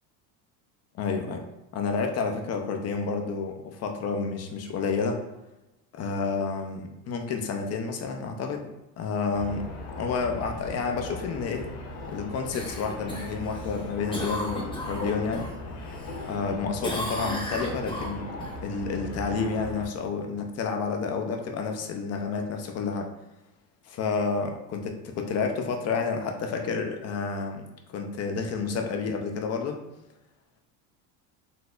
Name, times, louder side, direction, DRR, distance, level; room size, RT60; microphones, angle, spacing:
voice 1, 0.9-1.4 1.7-5.2 5.9-8.7 9.0-9.7 10.0-11.7 12.1-15.5 16.3-18.3 18.6-23.1 23.9-29.8, left 4 dB, 35° left, 4 dB, 0.5 m, -30 dB
sound 1, 9.3-19.9, left 2 dB, 65° left, 0.9 m, -38 dB
Cough, 12.5-15.5 15.9-16.5 16.8-18.5 22.9-23.0, equal, 10° left, 0.8 m, -35 dB
4.1 x 2.7 x 2.4 m, 0.95 s
supercardioid pair, 110°, 46 cm